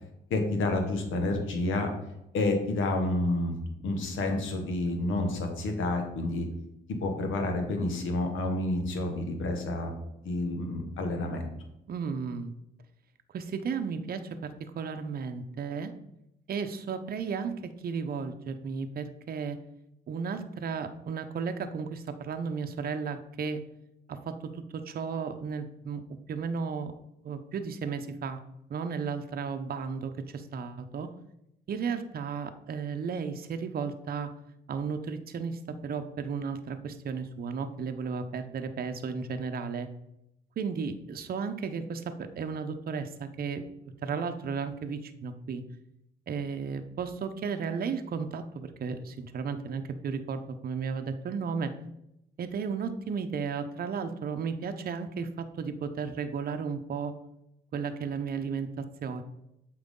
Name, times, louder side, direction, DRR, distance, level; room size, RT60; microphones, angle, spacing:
voice 1, 0.3-1.9 2.3-3.5 3.8-6.5 6.9-9.9 10.2-11.5, left 2 dB, 80° left, 4 dB, 1.4 m, -29 dB
voice 2, 11.9-12.5 13.3-15.9 16.5-19.6 20.1-23.6 24.1-26.0 26.3-26.9 27.2-28.4 28.7-31.1 31.7-34.3 34.7-39.9 40.6-43.6 44.0-45.6 46.3-51.7 52.4-57.1 57.7-59.2, right 5 dB, 50° right, 8 dB, 0.7 m, -34 dB
7.8 x 4.7 x 3.7 m, 0.82 s
cardioid pair, 90°, 20 cm